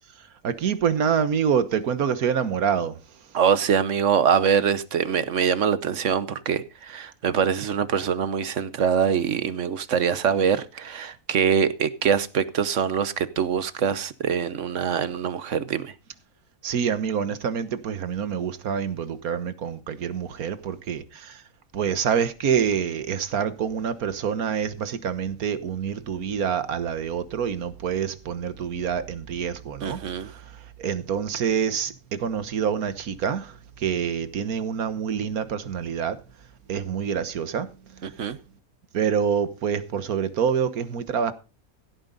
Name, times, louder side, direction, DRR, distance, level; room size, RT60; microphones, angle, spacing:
voice 1, 0.2-3.0 16.6-21.4 21.7-36.2 36.7-37.7 37.9-38.0 38.9-41.3, right 7 dB, 80° right, 1.6 m, -26 dB
voice 2, 3.3-15.9 29.8-30.3 38.0-38.4, right 7 dB, 60° right, 1.2 m, -24 dB
16.0 x 9.2 x 4.0 m
omnidirectional pair, 1.5 m